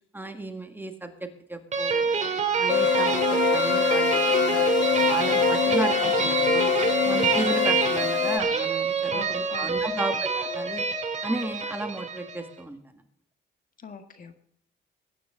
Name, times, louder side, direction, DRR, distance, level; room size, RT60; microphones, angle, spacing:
voice 1, 0.1-2.2 2.6-6.7 7.0-10.8 11.2-13.0, right 2 dB, 10° right, 5 dB, 1.8 m, -34 dB
sound 1, 1.7-12.5, right 5 dB, 35° right, 2.5 m, -26 dB
sound 2, 2.7-8.4, left 9 dB, 65° left, 0.7 m, -25 dB
voice 2, 9.1-10.2 13.8-14.4, left 5 dB, 45° left, 7 dB, 1.6 m, -41 dB
20.5 x 9.3 x 3.8 m, 0.70 s
cardioid pair, 90°, 20 cm